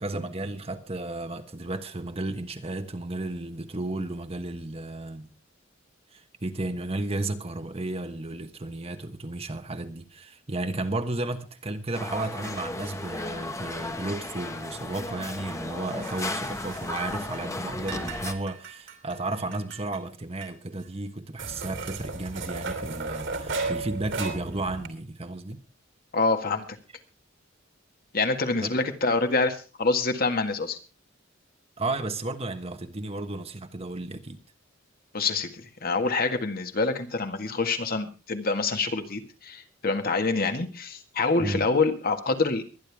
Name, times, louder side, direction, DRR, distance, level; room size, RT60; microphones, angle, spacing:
voice 1, 0.0-5.3 6.1-25.6 28.6-28.7 31.8-34.4 41.4-41.6, right 2 dB, 30° right, 1.2 m, -33 dB
sound 1, 11.9-18.3, left 2 dB, 15° left, 1.2 m, -35 dB
sound 2, 16.0-17.5 17.7-20.0 20.4-20.5 20.8-20.9 21.4-24.9, right 3 dB, 65° right, 3.0 m, -35 dB
voice 2, 26.1-26.7 28.1-30.8 35.1-42.6, left 3 dB, 50° left, 1.8 m, -26 dB
23.5 x 10.5 x 3.5 m
head